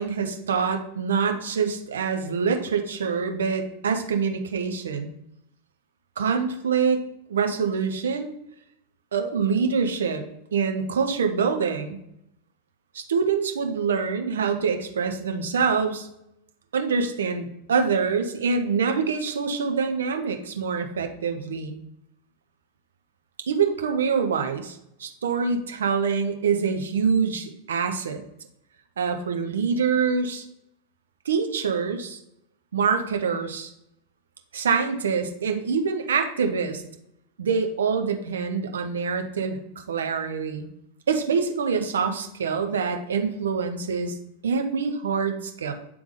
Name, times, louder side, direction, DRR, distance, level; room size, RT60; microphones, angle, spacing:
voice 1, 0.0-5.1 6.2-7.0 7.3-8.3 9.1-10.3 10.5-12.0 12.9-16.1 16.7-21.8 23.5-28.2 29.0-30.4 31.2-32.2 32.7-33.7 34.5-36.8 37.4-39.6 39.9-40.7 41.1-44.2 44.4-45.7, right 5 dB, 65° right, 5 dB, 0.7 m, -25 dB
8.6 x 3.5 x 3.2 m, 0.78 s
figure-of-eight pair, 90°, 0 cm